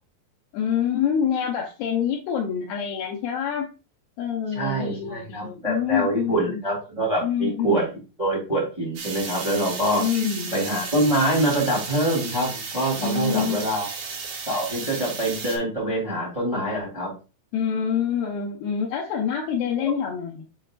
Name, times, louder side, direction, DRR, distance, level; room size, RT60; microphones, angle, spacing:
voice 1, 0.5-3.7 4.2-6.6 7.2-7.8 10.0-10.6 12.9-13.7 17.5-20.4, left 8 dB, 90° left, -1 dB, 2.3 m, -26 dB
voice 2, 4.5-7.9 8.2-10.0 10.5-13.9 14.5-17.1 19.8-19.9, right 1 dB, 10° right, -4 dB, 1.9 m, -25 dB
sound 1, 9.0-15.6, right 5 dB, 70° right, 1.8 m, -34 dB
7.5 x 5.4 x 2.5 m, 0.32 s
omnidirectional pair, 5.6 m